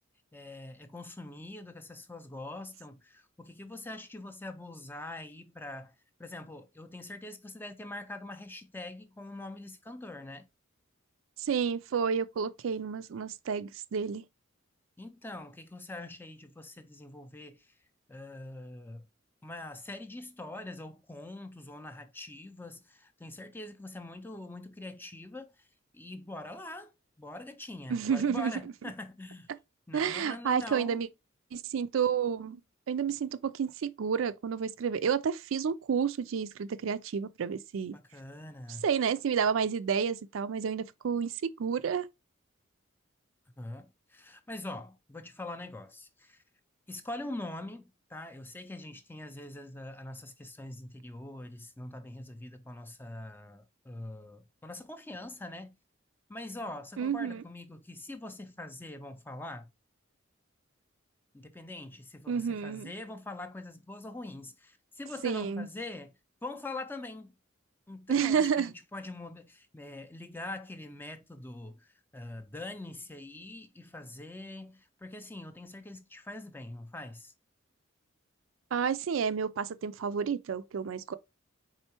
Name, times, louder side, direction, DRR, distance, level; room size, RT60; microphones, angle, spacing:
voice 1, 0.3-5.9 6.2-10.5 15.0-17.7 18.1-19.1 19.4-25.7 25.9-26.9 27.2-29.5 29.9-31.0 37.9-38.9 43.6-46.4 46.9-55.7 56.3-59.7 61.3-67.4 67.9-77.3, left 2 dB, 10° left, 0.4 m, -43 dB
voice 2, 11.4-14.2 27.9-28.5 29.9-31.1 31.5-32.6 32.9-38.0 38.8-42.1 57.0-57.4 62.3-62.9 65.2-65.7 68.1-68.7 78.7-81.2, right 7 dB, 80° right, 0.4 m, -30 dB
4.4 x 3.7 x 2.9 m
head